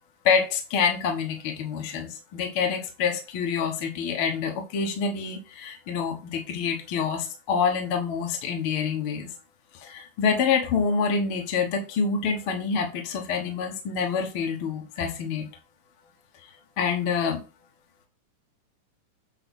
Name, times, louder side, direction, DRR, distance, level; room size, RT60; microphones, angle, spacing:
voice 1, 0.2-9.3 9.8-15.4 16.8-17.4, left 6 dB, 55° left, 2 dB, 1.5 m, -27 dB
8.1 x 3.2 x 6.2 m, 0.30 s
omnidirectional pair, 3.7 m